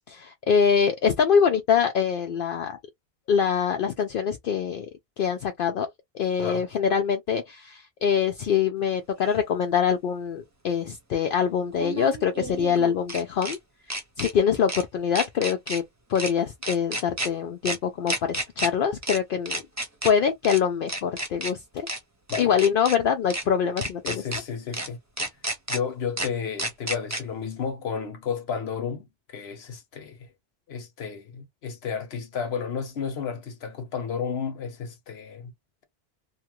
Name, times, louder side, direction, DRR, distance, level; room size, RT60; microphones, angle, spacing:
voice 1, 0.1-2.8 3.3-4.9 5.2-5.9 6.1-13.6 14.2-15.8 16.1-19.6 20.0-21.9 22.4-24.2, left 7 dB, 65° left, 0.7 m, -24 dB
sound 1, 9.3-9.4 11.7-13.6 13.9-14.3 14.7-14.8 15.2-15.8 16.2-16.3 16.6-17.3 17.7-17.8 18.1-18.7 19.0-19.2 19.5-20.1 20.4-20.6 20.9-21.5 21.9-22.0 22.3-23.0 23.3-23.4 23.8-24.4 24.7-24.9 25.2-25.8 26.2-26.3 26.6-27.2, right 1 dB, 15° right, 0.8 m, -31 dB
voice 2, 24.0-25.0 25.7-30.3 30.7-35.5, left 6 dB, 80° left, 1.1 m, -32 dB
2.9 x 2.3 x 2.9 m
omnidirectional pair, 1.0 m